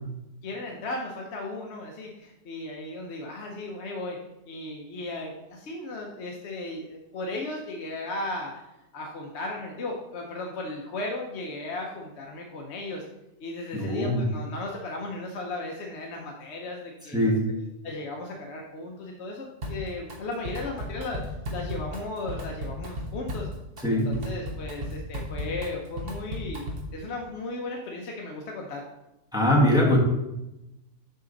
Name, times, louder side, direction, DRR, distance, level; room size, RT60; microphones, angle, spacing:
voice 1, 0.4-4.2 4.5-8.6 8.9-13.0 13.4-17.3 17.8-23.5 23.9-26.7 26.9-28.8, left 2 dB, 55° left, 0 dB, 0.9 m, -36 dB
voice 2, 13.7-14.2 17.1-17.5 23.8-24.2 29.3-30.0, equal, 5° right, -4 dB, 1.3 m, -22 dB
Drum kit, 19.6-20.2 20.5-27.0, left 1 dB, 45° right, 1.1 m, -35 dB
6.6 x 6.1 x 3.9 m, 0.94 s
omnidirectional pair, 1.6 m